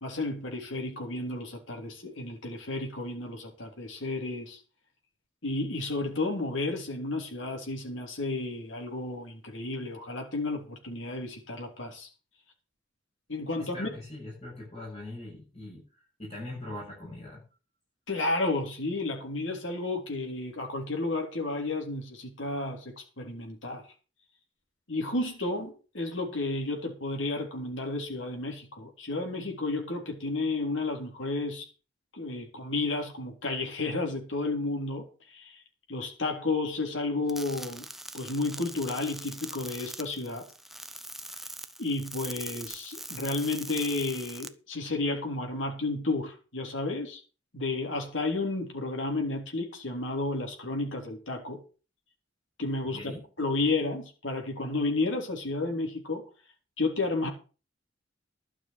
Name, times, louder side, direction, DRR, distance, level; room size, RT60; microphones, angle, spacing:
voice 1, 0.0-4.6 5.4-12.1 13.3-13.9 18.1-23.8 24.9-31.7 32.1-35.6 35.9-37.9 38.1-40.5 41.8-47.2 47.5-51.6 52.6-53.0 53.4-56.2 56.8-57.3, left 2 dB, 80° left, 2 dB, 3.4 m, -32 dB
voice 2, 13.6-15.9 16.2-17.4 52.9-53.2, left 1 dB, 35° left, -4 dB, 7.6 m, -41 dB
sound 1, 37.3-44.5, right 1 dB, ahead, 0.8 m, -42 dB
12.5 x 6.1 x 8.1 m, 0.35 s
head